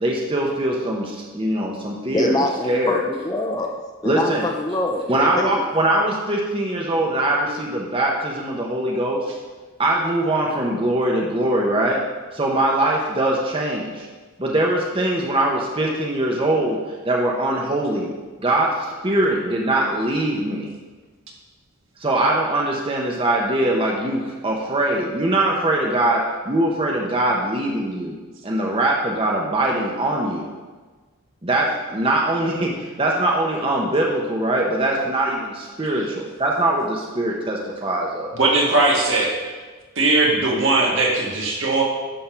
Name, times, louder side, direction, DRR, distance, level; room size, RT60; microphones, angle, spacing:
voice 1, 0.0-2.3 2.7-3.0 4.0-4.5 5.1-9.4 9.8-12.0 12.3-14.1 14.4-16.8 17.1-18.1 18.4-20.7 22.0-28.1 28.4-30.5 31.4-38.4, right 1 dB, 25° right, -2 dB, 0.8 m, -22 dB
voice 2, 2.1-3.7 4.0-5.6, left 2 dB, 20° left, 3 dB, 0.5 m, -25 dB
voice 3, 38.4-39.4 40.0-41.8, right 2 dB, 60° right, -2 dB, 1.6 m, -19 dB
10.0 x 3.7 x 5.7 m, 1.3 s
head